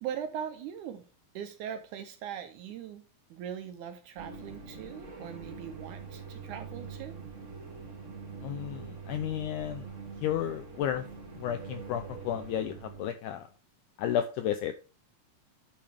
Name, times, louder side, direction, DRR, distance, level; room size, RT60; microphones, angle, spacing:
voice 1, 0.0-1.1 1.4-3.0 3.3-7.2, right 9 dB, 75° right, 7 dB, 1.9 m, -40 dB
sound 1, 4.2-13.0, right 5 dB, 40° right, 1.0 m, -44 dB
voice 2, 8.4-9.9 10.2-11.1 11.4-13.5 14.0-14.8, left 10 dB, 85° left, 8 dB, 1.8 m, -32 dB
10.5 x 5.1 x 3.4 m, 0.36 s
omnidirectional pair, 4.1 m